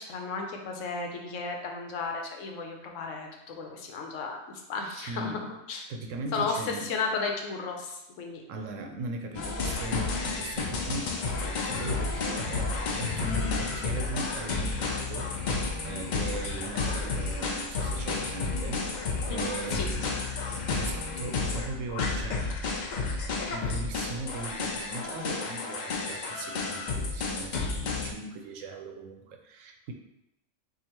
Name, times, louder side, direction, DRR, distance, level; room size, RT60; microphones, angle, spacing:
voice 1, 0.0-5.4 5.7-5.8 6.3-8.4 16.1-16.4 19.3-20.1, left 4 dB, 80° left, 2 dB, 1.0 m, -34 dB
voice 2, 5.0-5.5 5.9-6.9 8.5-15.6 15.8-18.8 19.3-20.1 20.8-22.5 23.5-29.9, right 3 dB, 85° right, 4 dB, 0.9 m, -39 dB
sound 1, 9.3-28.1, left 4 dB, 60° left, 0.5 m, -31 dB
4.8 x 2.4 x 2.9 m, 0.89 s
omnidirectional pair, 1.3 m